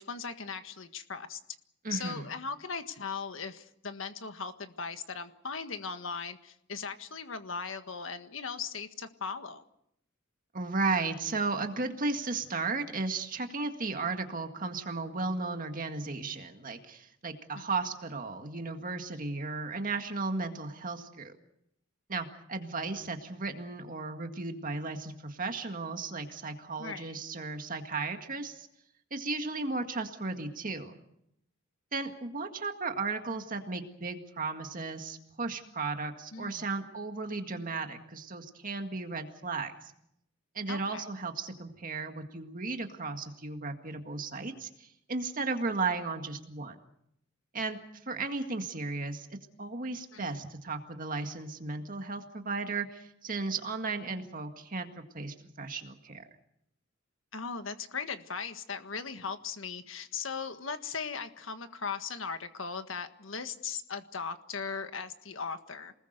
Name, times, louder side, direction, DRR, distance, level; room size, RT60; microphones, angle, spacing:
voice 1, 0.0-1.4 1.9-9.6 17.5-17.6 26.8-27.2 36.3-36.7 40.7-41.0 50.1-50.4 57.3-65.9, left 5 dB, 80° left, 8 dB, 1.6 m, -38 dB
voice 2, 1.8-2.3 10.5-21.3 22.1-28.7 29.1-31.0 31.9-39.9 40.5-46.8 47.5-47.8 48.1-49.3 49.6-56.2, right 3 dB, 45° right, 5 dB, 1.9 m, -35 dB
28.5 x 20.0 x 6.7 m, 0.76 s
head